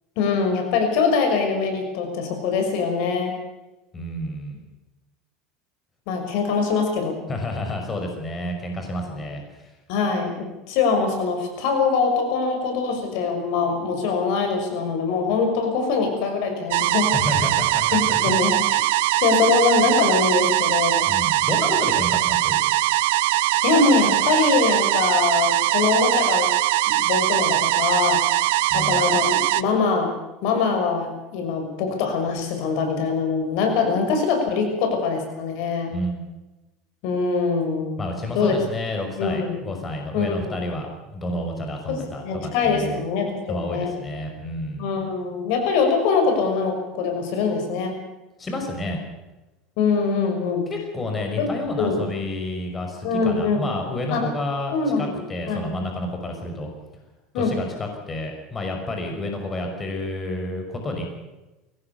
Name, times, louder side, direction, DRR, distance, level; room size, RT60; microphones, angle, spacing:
voice 1, 0.2-3.3 6.1-7.2 9.9-17.1 17.9-18.9 19.2-21.1 23.6-26.5 26.9-28.2 28.7-30.1 30.4-35.9 37.0-37.9 38.3-38.6 39.2-39.6 40.1-40.6 41.9-43.9 44.8-48.0 49.8-50.7 51.4-51.5 51.8-52.1 53.0-53.7 54.1-54.3 54.7-55.2 55.5-55.8 57.3-57.6, left 5 dB, 70° left, 4 dB, 6.1 m, -23 dB
voice 2, 3.9-4.6 7.3-9.4 17.1-18.4 21.1-22.6 28.7-29.1 35.9-36.2 38.0-43.0 43.5-44.9 48.4-49.0 50.7-56.7 57.3-61.1, left 1 dB, 20° left, 3 dB, 5.5 m, -30 dB
sound 1, 16.7-29.6, right 17 dB, 85° right, 0.8 m, -21 dB
22.5 x 18.0 x 6.9 m, 1.1 s
supercardioid pair, 130°, 0 cm